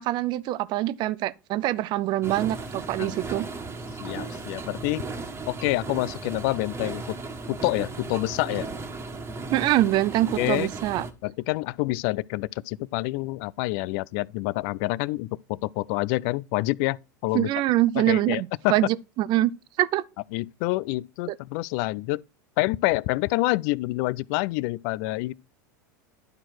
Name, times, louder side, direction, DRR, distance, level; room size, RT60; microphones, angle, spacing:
voice 1, 0.0-3.5 9.5-11.1 17.3-19.5 19.8-20.0, right 15 dB, 45° right, 0.5 m, -24 dB
sound 1, 2.2-11.1, right 3 dB, 25° right, 1.5 m, -36 dB
voice 2, 4.0-5.0 5.5-7.2 7.5-8.7 10.4-10.7 11.2-17.5 18.0-18.7 20.3-22.2 22.6-25.3, left 20 dB, 60° left, 0.4 m, -27 dB
11.0 x 4.4 x 4.6 m
hypercardioid pair, 95°, 10 cm